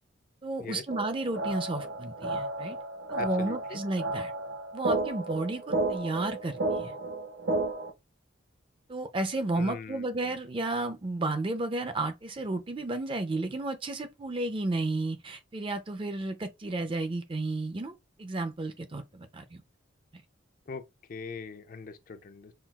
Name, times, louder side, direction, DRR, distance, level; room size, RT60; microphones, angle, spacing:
voice 1, 0.4-2.8 3.1-4.3 4.7-7.0 8.9-19.6, right 2 dB, 25° right, 0.4 m, -32 dB
sound 1, 0.9-7.9, right 2 dB, 60° right, 0.7 m, -32 dB
voice 2, 3.2-3.8 9.6-10.4 20.7-20.8 21.1-22.5, left 4 dB, 40° left, 0.4 m, -41 dB
5.7 x 2.3 x 2.3 m
head